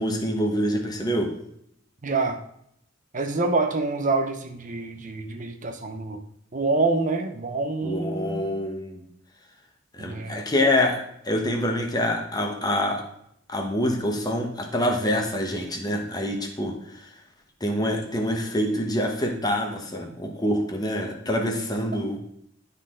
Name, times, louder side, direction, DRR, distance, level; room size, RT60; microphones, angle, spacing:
voice 1, 0.0-1.3 7.8-9.0 9.9-13.0 13.5-17.1 17.6-22.2, left 1 dB, 20° left, 2 dB, 1.1 m, -26 dB
voice 2, 2.0-2.4 3.1-6.2 6.5-8.5 10.0-10.3, right 3 dB, 40° right, 5 dB, 0.7 m, -26 dB
11.5 x 4.1 x 3.7 m, 0.72 s
head